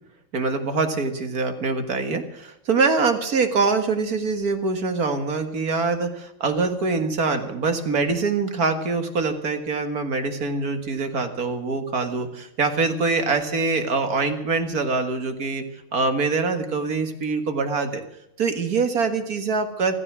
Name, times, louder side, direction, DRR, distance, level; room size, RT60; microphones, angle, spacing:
voice 1, 0.3-15.6 15.9-18.0 18.4-19.9, right 4 dB, 45° right, 7 dB, 2.0 m, -24 dB
15.0 x 15.0 x 6.1 m, 0.80 s
omnidirectional pair, 2.3 m